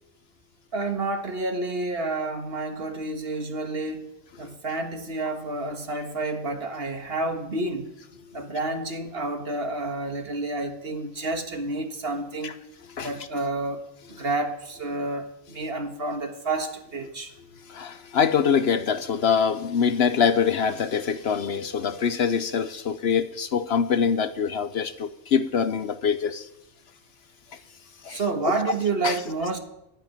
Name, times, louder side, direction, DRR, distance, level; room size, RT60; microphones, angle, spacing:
voice 1, 0.7-4.1 4.4-7.9 8.3-12.6 13.0-17.3 28.1-29.6, right 2 dB, 55° right, 1.8 m, -29 dB
voice 2, 17.7-26.5 28.0-28.2 29.0-29.2, left 7 dB, 60° left, 1.0 m, -24 dB
12.0 x 10.5 x 9.2 m
omnidirectional pair, 1.2 m